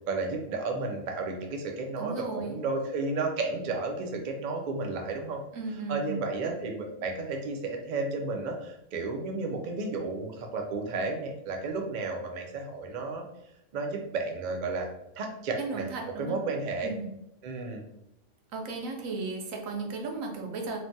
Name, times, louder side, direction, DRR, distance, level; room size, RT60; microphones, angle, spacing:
voice 1, 0.1-5.4 5.9-13.2 13.7-14.9 15.1-15.9 16.2-16.9 17.4-17.8, right 3 dB, 65° right, 2 dB, 0.4 m, -32 dB
voice 2, 2.0-2.6 5.5-6.2 15.6-16.4 16.8-17.1 18.5-20.8, right 3 dB, 80° right, 3 dB, 1.0 m, -35 dB
3.2 x 2.2 x 2.6 m, 0.81 s
omnidirectional pair, 1.3 m